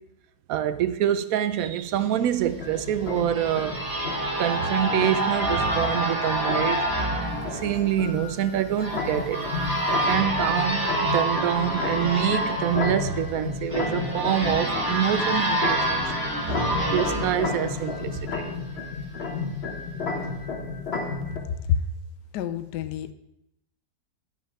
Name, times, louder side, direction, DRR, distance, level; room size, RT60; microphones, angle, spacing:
voice 1, 0.5-3.8 4.4-6.9 7.5-9.4 10.0-16.0 16.8-18.5, right 10 dB, 70° right, 0.9 m, -26 dB
sound 1, 2.2-21.4, left 4 dB, 40° left, 1.2 m, -33 dB
sound 2, 2.7-18.4, right 1 dB, 10° right, 2.5 m, -28 dB
voice 2, 21.5-21.8 22.3-23.1, left 8 dB, 75° left, 1.2 m, -27 dB
9.1 x 5.3 x 5.8 m
omnidirectional pair, 1.9 m